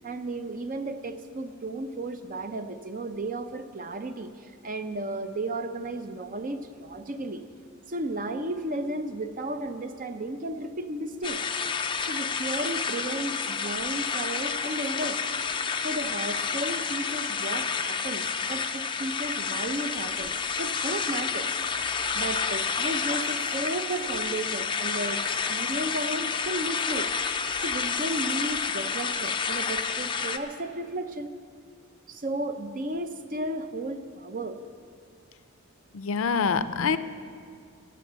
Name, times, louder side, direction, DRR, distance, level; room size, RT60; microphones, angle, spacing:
voice 1, 0.0-7.4 7.9-11.4 12.0-15.2 15.8-25.2 25.5-27.1 27.6-31.3 32.1-34.6, right 1 dB, 40° right, 9 dB, 0.6 m, -34 dB
sound 1, 11.2-30.4, left 6 dB, 25° left, 0.4 m, -30 dB
voice 2, 35.9-37.0, left 5 dB, 75° left, 13 dB, 0.5 m, -25 dB
16.0 x 6.9 x 7.5 m, 2.3 s
head